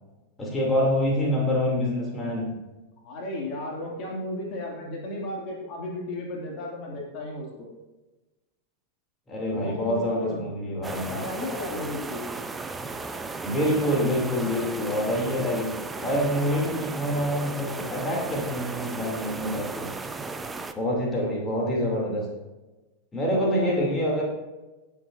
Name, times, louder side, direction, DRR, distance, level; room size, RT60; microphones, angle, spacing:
voice 1, 0.4-2.5 9.3-11.2 13.4-15.7 16.0-19.9 20.8-22.3 23.1-24.2, equal, 15° left, -2 dB, 3.0 m, -26 dB
voice 2, 3.0-7.7 9.5-10.4 11.0-12.3 23.4-23.9, left 1 dB, 40° left, -1 dB, 2.5 m, -34 dB
sound 1, 10.8-20.7, right 3 dB, 10° right, 0.7 m, -35 dB
19.0 x 7.2 x 2.7 m, 1.1 s
figure-of-eight pair, 90°, 0 cm